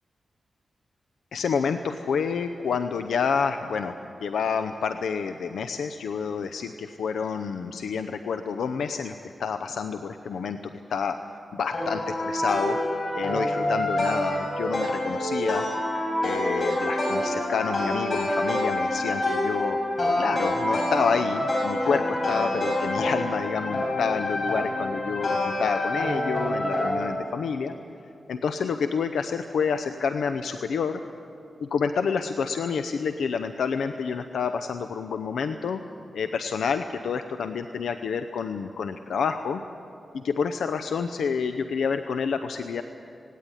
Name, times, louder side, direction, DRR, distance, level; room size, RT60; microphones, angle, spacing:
voice 1, 1.3-3.9 4.2-11.2 11.5-12.8 13.2-15.6 16.2-19.8 20.2-27.7 28.3-31.0 31.6-35.8 36.1-39.6 40.1-42.8, left 6 dB, 90° left, 8 dB, 0.7 m, -28 dB
sound 1, 11.7-27.0, left 1 dB, 55° left, 6.7 m, -27 dB
18.0 x 17.5 x 9.9 m, 2.6 s
cardioid pair, 70°, 0 cm